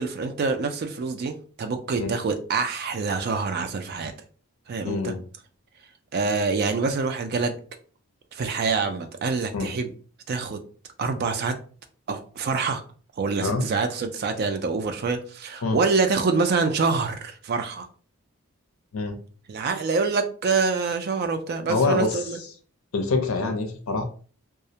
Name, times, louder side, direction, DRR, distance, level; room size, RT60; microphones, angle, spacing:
voice 1, 0.0-4.1 4.7-5.1 6.1-7.5 8.3-9.9 10.3-10.6 11.0-11.5 12.1-12.8 13.2-17.9 19.5-22.4 23.4-23.5, right 4 dB, 45° right, 7 dB, 0.3 m, -26 dB
voice 2, 4.8-5.2 9.5-9.7 13.4-13.6 15.6-15.8 18.9-19.2 21.7-22.1 22.9-24.0, left 3 dB, 70° left, 5 dB, 0.5 m, -25 dB
2.3 x 2.0 x 2.7 m, 0.41 s
head